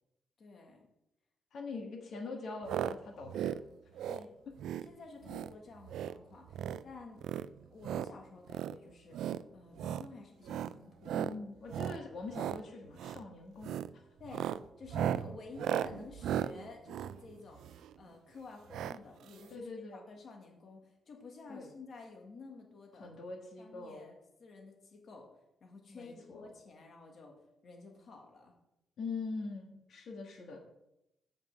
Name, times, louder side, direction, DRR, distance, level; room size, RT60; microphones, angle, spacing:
voice 1, 0.4-0.9 4.1-4.3 4.8-7.2 7.6-11.2 14.2-14.5 14.8-23.1 23.6-25.3 25.6-27.4 27.6-28.5, left 3 dB, 50° left, 1 dB, 1.6 m, -51 dB
voice 2, 1.5-3.6 11.1-13.8 19.5-20.0 21.5-21.7 23.0-24.1 25.9-26.5 29.0-30.6, left 3 dB, 65° left, 1 dB, 1.6 m, -43 dB
sound 1, 2.6-2.9 3.2-3.6 3.9-4.2 4.6-4.9 5.2-5.5 5.8-6.2 6.5-6.8 7.2-8.1 8.5-8.7 9.1-9.4 9.8-10.1 10.4-10.7 11.0-11.3 11.7-12.0 12.3-12.6 13.0-13.2 13.6-13.9 14.2-17.9 18.7-19.0 19.3-19.4 19.5-19.6, right 10 dB, 85° right, 0.3 m, -36 dB
7.3 x 5.3 x 7.3 m, 0.87 s
cardioid pair, 130°, 0 cm